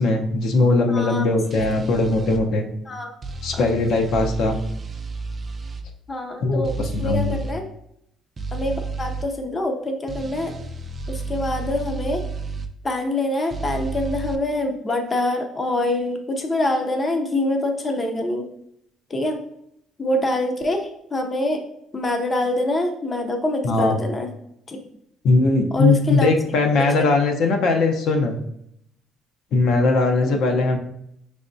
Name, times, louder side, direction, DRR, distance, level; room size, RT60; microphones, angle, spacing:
voice 1, 0.0-2.7 3.4-4.6 6.4-7.4 23.6-24.0 25.2-28.4 29.5-30.8, left 3 dB, 65° left, 3 dB, 0.6 m, -20 dB
voice 2, 0.9-1.2 2.9-3.1 6.1-6.7 7.0-7.6 8.5-10.5 11.1-12.2 12.8-18.4 19.1-19.4 20.0-21.6 21.9-24.3 24.7-24.8 25.7-26.3 26.8-27.0 30.3-30.4, left 1 dB, 25° left, 4 dB, 0.5 m, -25 dB
sound 1, 1.5-2.4 3.2-5.8 6.6-7.6 8.4-9.3 10.1-12.7 13.5-14.4, right 3 dB, 30° right, 0.4 m, -31 dB
5.1 x 3.4 x 2.6 m, 0.74 s
cardioid pair, 130°, 0 cm